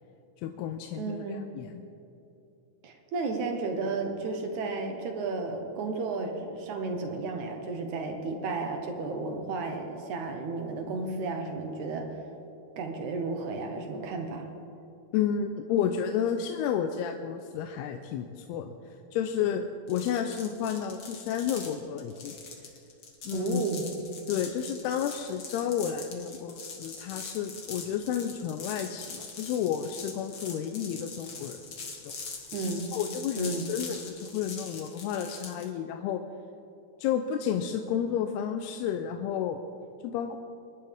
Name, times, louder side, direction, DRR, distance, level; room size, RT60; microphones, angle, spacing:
voice 1, 0.4-1.8 15.1-18.7 19.1-22.4 23.3-23.6 24.3-31.6 32.0-32.2 32.9-36.2 37.0-39.6 40.0-40.4, left 8 dB, 85° left, 6 dB, 2.6 m, -31 dB
voice 2, 1.0-1.4 2.8-12.1 12.8-14.5 23.3-23.8 32.5-32.8 33.4-33.7, right 3 dB, 65° right, 4 dB, 2.1 m, -33 dB
sound 1, 19.9-35.7, left 4 dB, 50° left, 1.6 m, -42 dB
24.0 x 11.5 x 3.5 m, 2.8 s
omnidirectional pair, 4.5 m